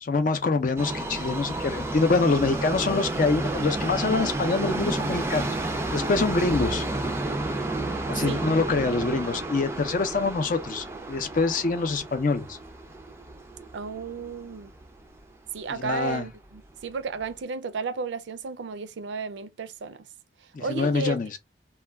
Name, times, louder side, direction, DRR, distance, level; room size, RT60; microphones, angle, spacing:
voice 1, 0.0-5.5 5.9-6.9 8.1-12.6 15.7-16.3 20.5-21.4, left 3 dB, 45° left, 0.4 m, -25 dB
Subway metro underground, 0.8-14.9 15.2-15.3 16.1-16.2 16.5-16.6 17.2-17.3, right 2 dB, 15° right, 0.4 m, -31 dB
voice 2, 13.7-14.7 15.5-20.1 20.6-21.2, right 5 dB, 80° right, 0.4 m, -33 dB
2.2 x 2.2 x 3.3 m
head